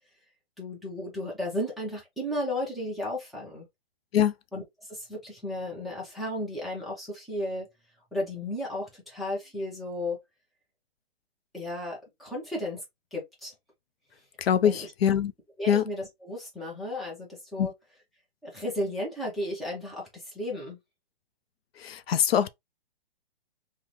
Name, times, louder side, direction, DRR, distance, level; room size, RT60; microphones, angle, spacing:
voice 1, 0.6-3.7 4.5-7.7 8.1-10.2 11.5-12.8 13.1-13.5 14.6-14.9 15.6-17.7 18.4-20.8, left 1 dB, ahead, 0.5 m, -34 dB
voice 2, 14.4-15.3 15.7-15.8 17.6-17.7 21.8-22.5, left 9 dB, 80° left, 0.5 m, -23 dB
3.6 x 2.1 x 2.9 m
hypercardioid pair, 150°, 30 cm